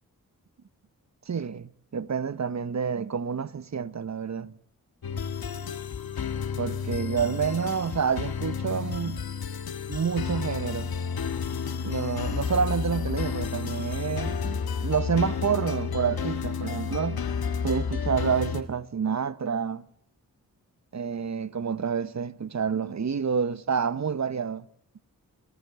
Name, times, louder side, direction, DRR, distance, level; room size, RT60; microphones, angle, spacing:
voice 1, 1.3-4.5 6.6-9.2 9.9-10.9 11.8-17.2 17.6-19.9 20.9-24.7, right 6 dB, 50° right, 0.9 m, -28 dB
sound 1, 5.0-18.6, left 6 dB, 85° left, 1.6 m, -31 dB
24.0 x 18.0 x 8.1 m
cardioid pair, 60°, 36 cm